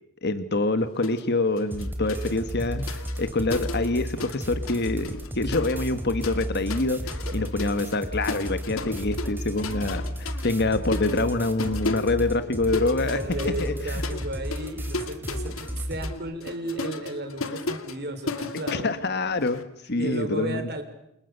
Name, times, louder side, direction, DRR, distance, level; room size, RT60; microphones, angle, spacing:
voice 1, 0.2-13.2 13.4-14.0 18.7-20.7, left 2 dB, 50° left, 10 dB, 1.5 m, -26 dB
sound 1, 1.0-1.3 1.6-4.4 4.7-19.6, left 3 dB, 70° left, 2.4 m, -36 dB
sound 2, 1.7-16.1, equal, 10° right, 3.1 m, -33 dB
voice 2, 7.3-7.7 12.9-19.1 20.0-20.8, right 1 dB, 50° right, 7 dB, 4.9 m, -34 dB
29.5 x 28.0 x 6.9 m, 0.80 s
head